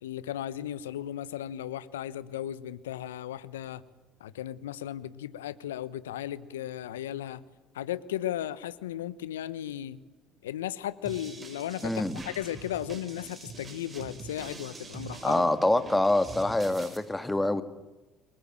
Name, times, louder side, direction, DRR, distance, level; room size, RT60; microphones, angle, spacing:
voice 1, 0.0-3.8 4.2-7.4 7.7-10.0 10.4-11.9 12.2-15.5, left 12 dB, 85° left, 16 dB, 1.1 m, -35 dB
sound 1, 11.0-17.0, right 3 dB, 30° right, 6.7 m, -44 dB
voice 2, 11.8-12.2 15.2-17.6, left 1 dB, 10° left, 11 dB, 2.4 m, -25 dB
28.5 x 22.5 x 8.9 m, 1.1 s
hypercardioid pair, 60°, 0 cm